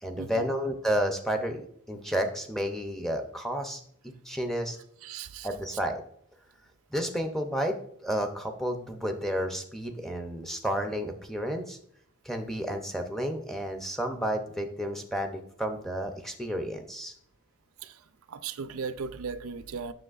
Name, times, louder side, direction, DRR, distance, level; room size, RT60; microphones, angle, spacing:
voice 1, 0.0-4.8 5.4-6.0 6.9-11.8 12.2-17.1, equal, ahead, 0.5 m, -31 dB
voice 2, 5.0-5.5 17.8-17.9 18.3-19.9, right 5 dB, 85° right, 0.4 m, -37 dB
7.7 x 6.1 x 2.4 m
head